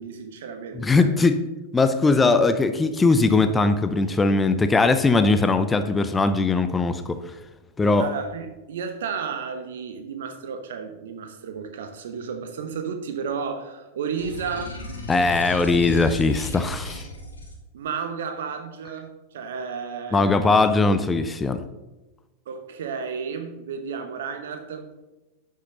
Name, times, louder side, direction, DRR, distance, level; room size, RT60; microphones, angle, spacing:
voice 1, 0.0-1.1 8.0-14.8 17.7-20.6 22.5-24.9, right 6 dB, 60° right, 7 dB, 1.2 m, -32 dB
voice 2, 0.7-1.4 1.7-7.2 7.8-8.1 15.1-17.1 20.1-21.6, left 3 dB, 15° left, 10 dB, 0.6 m, -20 dB
sound 1, 14.2-17.5, left 1 dB, 75° left, 1.6 m, -35 dB
11.0 x 6.5 x 4.0 m, 1.1 s
figure-of-eight pair, 90°, 0 cm